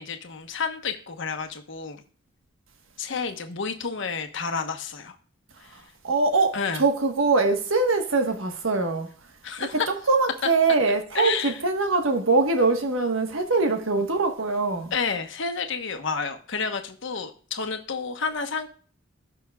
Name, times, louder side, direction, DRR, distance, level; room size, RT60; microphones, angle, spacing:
voice 1, 0.0-2.0 3.0-5.1 6.5-6.8 9.4-9.9 11.1-11.6 14.9-18.7, left 5 dB, 65° left, 1.1 m, -30 dB
voice 2, 5.7-9.1 9.6-14.9, right 3 dB, 85° right, 1.4 m, -23 dB
15.0 x 6.0 x 2.4 m
head